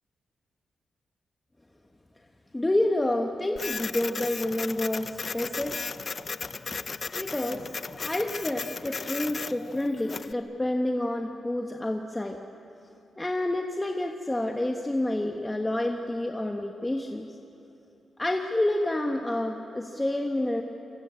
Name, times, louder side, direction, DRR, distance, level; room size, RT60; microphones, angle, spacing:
voice 1, 2.5-5.9 7.2-7.7 8.0-12.4 13.2-17.3 18.2-20.6, left 1 dB, 15° left, 2 dB, 1.3 m, -29 dB
Printer, 3.6-10.3, left 4 dB, 40° left, 0.7 m, -36 dB
27.5 x 24.0 x 8.8 m, 2.9 s
cardioid pair, 105°, 0 cm